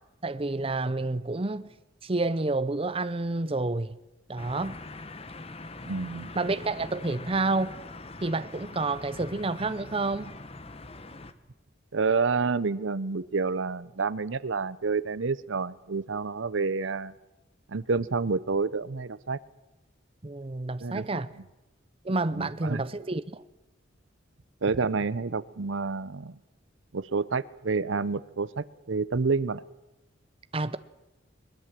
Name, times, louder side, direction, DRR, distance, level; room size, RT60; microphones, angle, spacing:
voice 1, 0.2-1.7 2.0-4.0 4.3-4.8 6.3-7.8 8.2-10.3 20.2-21.3 22.0-23.4 30.5-30.8, right 2 dB, 30° right, 0.7 m, -29 dB
sound 1, 4.4-11.3, left 2 dB, 30° left, 1.2 m, -43 dB
voice 2, 5.8-6.3 11.9-17.1 17.7-19.4 20.8-21.2 22.3-22.8 24.6-26.4 26.9-29.6, right 4 dB, 75° right, 0.7 m, -29 dB
21.5 x 20.5 x 7.5 m
head